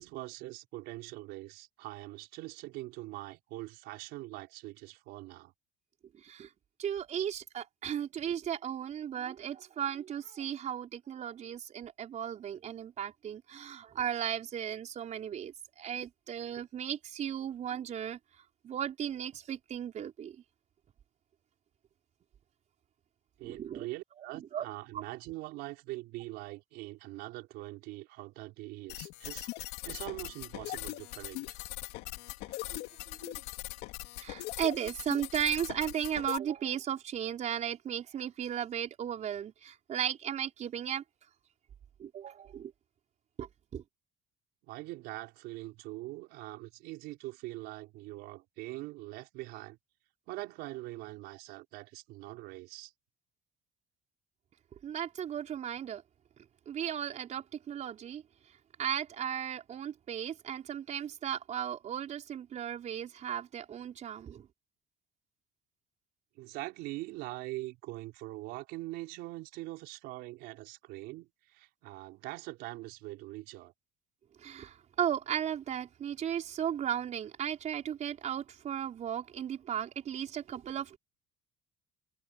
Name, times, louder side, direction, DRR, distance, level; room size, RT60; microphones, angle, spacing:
voice 1, 0.0-5.5 23.4-29.5 29.8-31.5 44.6-49.8 50.3-52.9 66.3-73.7, right 19 dB, 80° right, 4.7 m, -43 dB
voice 2, 6.1-6.5 6.8-18.2 18.6-20.4 23.4-23.9 24.5-24.7 32.7-33.3 34.2-41.0 42.0-42.7 43.4-43.8 54.8-56.0 56.7-58.2 58.8-64.5 74.4-81.0, right 9 dB, 45° right, 4.8 m, -36 dB
sound 1, 28.9-36.4, left 19 dB, 90° left, 2.7 m, -41 dB
cardioid pair, 120°, 16 cm